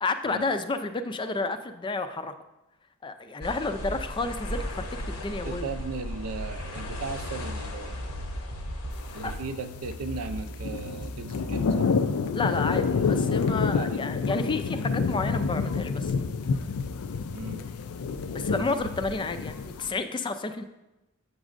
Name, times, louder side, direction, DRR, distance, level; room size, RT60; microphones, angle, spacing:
voice 1, 0.0-2.3 3.0-5.7 9.2-9.3 12.3-16.1 18.3-20.6, left 3 dB, 20° left, 9 dB, 0.3 m, -31 dB
sound 1, 3.4-9.3, equal, 70° left, 0.8 m, -36 dB
voice 2, 5.4-8.1 9.1-11.9 13.7-14.0 17.3-17.7, right 4 dB, 80° right, 9 dB, 0.5 m, -37 dB
sound 2, 6.5-11.7, left 1 dB, 40° right, 0.6 m, -39 dB
sound 3, 9.2-9.5 10.3-19.9, left 5 dB, 90° left, 0.4 m, -28 dB
8.0 x 6.1 x 2.5 m, 0.98 s
head